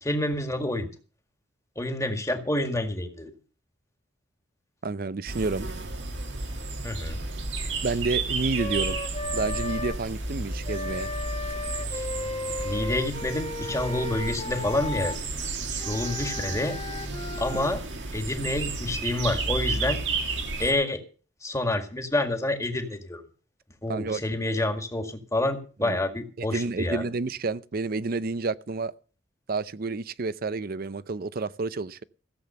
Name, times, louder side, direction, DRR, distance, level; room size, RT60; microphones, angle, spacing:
voice 1, 0.0-0.9 1.8-3.3 6.8-7.2 11.9-12.1 12.6-15.2 15.7-16.8 17.4-17.8 18.1-20.0 20.6-21.0 21.4-23.2 23.8-27.0, left 1 dB, 15° left, 1.9 m, -28 dB
voice 2, 4.8-5.7 7.8-9.0 9.3-11.1 23.9-24.2 25.8-26.0 26.4-28.9 29.5-32.0, right 3 dB, 55° right, 0.6 m, -30 dB
sound 1, 5.3-20.7, right 3 dB, 80° right, 2.4 m, -32 dB
Wind instrument woodwind instrument, 8.6-10.0 10.6-15.2 15.8-17.7, left 2 dB, 35° left, 1.2 m, -35 dB
15.5 x 7.8 x 6.8 m
head